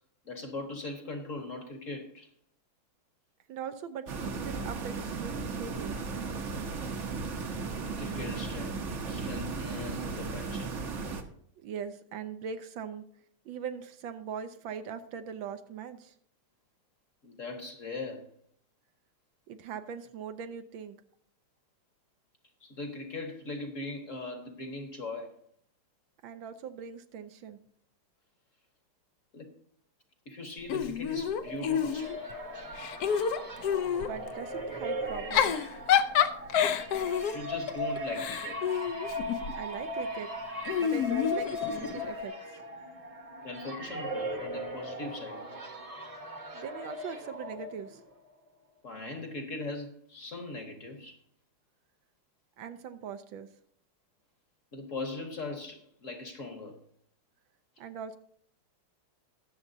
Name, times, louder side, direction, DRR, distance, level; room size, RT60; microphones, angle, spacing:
voice 1, 0.2-2.3 7.7-10.8 17.2-18.3 22.6-25.4 29.3-29.5 30.3-32.2 37.3-38.8 43.4-45.4 48.8-51.2 54.7-56.8, left 2 dB, 45° left, 1.2 m, -40 dB
voice 2, 3.5-6.0 11.6-13.0 13.4-16.1 19.5-21.0 26.2-27.6 34.0-35.6 39.6-40.3 40.8-42.3 46.5-48.0 52.6-53.5 57.8-58.2, right 7 dB, 75° right, 1.4 m, -41 dB
sound 1, 4.1-11.2, right 4 dB, 50° right, 1.0 m, -35 dB
Giggle / Chuckle chortle, 30.7-32.3 32.7-34.1 35.1-39.6 40.7-42.1, left 8 dB, 75° left, 0.9 m, -28 dB
sound 2, 31.1-48.1, equal, 25° right, 0.9 m, -38 dB
20.5 x 7.1 x 2.7 m
omnidirectional pair, 2.3 m